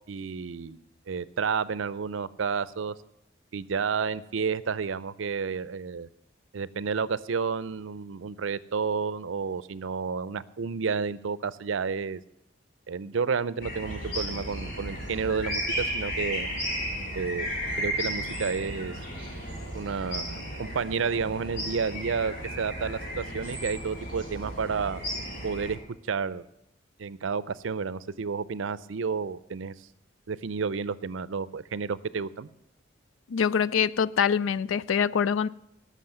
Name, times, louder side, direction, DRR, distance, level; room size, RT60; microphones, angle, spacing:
voice 1, 0.1-0.8 1.1-2.9 3.5-6.1 6.5-12.2 12.9-16.5 17.1-17.5 17.8-19.0 19.7-25.0 25.4-25.8 26.1-26.5 27.0-29.7 30.3-32.5, right 5 dB, 85° right, 0.5 m, -31 dB
sound 1, 13.6-25.7, equal, 45° left, 3.4 m, -34 dB
voice 2, 33.3-35.5, left 7 dB, 90° left, 0.4 m, -24 dB
13.5 x 6.3 x 9.1 m
head